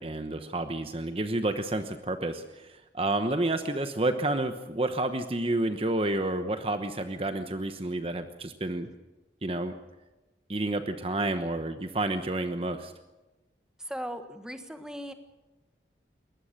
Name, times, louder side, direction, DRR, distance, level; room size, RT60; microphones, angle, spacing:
voice 1, 0.0-8.9 9.4-9.7 10.5-12.9, right 2 dB, 30° right, 8 dB, 1.0 m, -30 dB
voice 2, 13.8-15.1, equal, 5° right, 7 dB, 1.4 m, -38 dB
22.5 x 19.0 x 6.6 m, 1.1 s
head